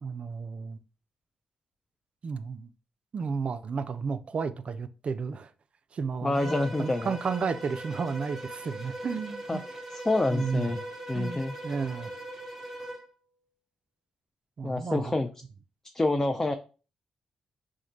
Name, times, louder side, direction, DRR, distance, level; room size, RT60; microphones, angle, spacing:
voice 1, 0.0-0.8 2.2-2.7 3.1-5.5 5.9-9.6 10.3-10.7 11.2-12.1 14.6-15.1, right 5 dB, 55° right, 0.3 m, -33 dB
voice 2, 6.2-7.1 9.5-9.6 10.0-10.8 11.1-11.5 14.6-15.3 15.9-16.5, left 2 dB, 20° left, 0.3 m, -27 dB
Bowed string instrument, 6.3-13.1, right 1 dB, 15° right, 1.0 m, -40 dB
3.1 x 2.1 x 3.8 m
supercardioid pair, 50°, 2 cm